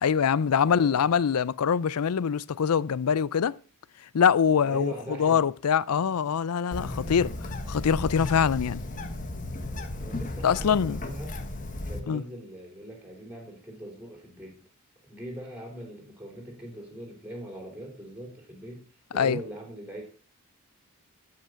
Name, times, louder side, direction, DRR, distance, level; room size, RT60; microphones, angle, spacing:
voice 1, 0.0-3.6 4.1-4.9 5.2-7.3 7.7-8.8 10.4-11.0 12.1-12.2 19.1-19.4, left 7 dB, 90° left, 0.5 m, -24 dB
voice 2, 0.6-1.2 4.5-5.4 5.9-6.3 6.7-7.0 9.6-11.4 11.9-14.6 15.0-18.8 19.1-20.0, right 1 dB, 5° right, 3.4 m, -41 dB
Bird, 6.7-12.0, left 2 dB, 35° left, 1.3 m, -35 dB
13.0 x 5.8 x 6.3 m
head